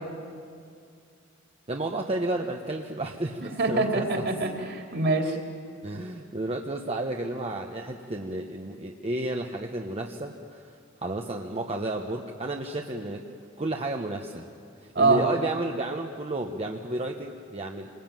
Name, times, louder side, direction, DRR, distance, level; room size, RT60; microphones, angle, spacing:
voice 1, 1.7-4.3 5.8-10.8 11.0-13.3 13.6-14.5 14.8-17.9, right 2 dB, 30° right, 2 dB, 1.0 m, -32 dB
voice 2, 3.6-5.4 14.9-15.2, right 3 dB, 55° right, 2 dB, 3.2 m, -24 dB
27.0 x 20.5 x 9.1 m, 2.3 s
head